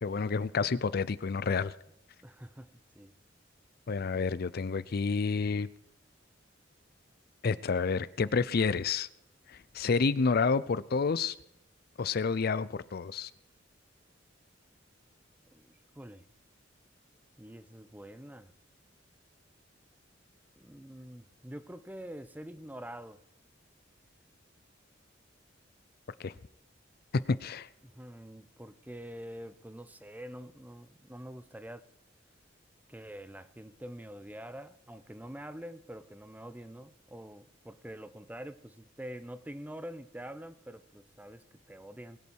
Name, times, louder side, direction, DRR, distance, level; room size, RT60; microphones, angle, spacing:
voice 1, 0.0-1.7 3.9-5.7 7.4-9.1 9.5-11.4 12.0-13.3 26.2-26.3 27.4-27.7, left 5 dB, 55° left, 17 dB, 0.5 m, -29 dB
voice 2, 2.2-2.7 2.9-3.1 15.5-16.2 17.4-18.5 20.6-23.2 27.8-31.8 32.9-42.2, equal, 10° right, 13 dB, 0.7 m, -46 dB
21.0 x 8.4 x 4.6 m, 0.79 s
head